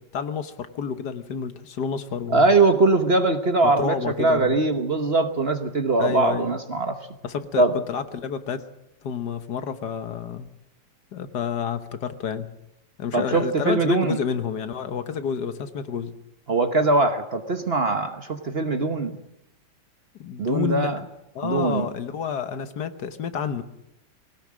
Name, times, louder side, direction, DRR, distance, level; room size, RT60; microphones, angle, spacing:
voice 1, 0.0-2.5 3.6-4.6 6.0-6.5 7.2-8.6 9.0-10.5 11.1-12.5 13.0-16.1 20.2-20.9 21.3-23.6, left 7 dB, 65° left, 10 dB, 1.6 m, -29 dB
voice 2, 2.3-7.0 7.6-7.7 13.1-14.2 16.5-19.1 20.4-21.0 21.4-21.9, right 3 dB, 40° right, 7 dB, 1.2 m, -21 dB
20.5 x 18.0 x 7.5 m, 0.89 s
omnidirectional pair, 1.9 m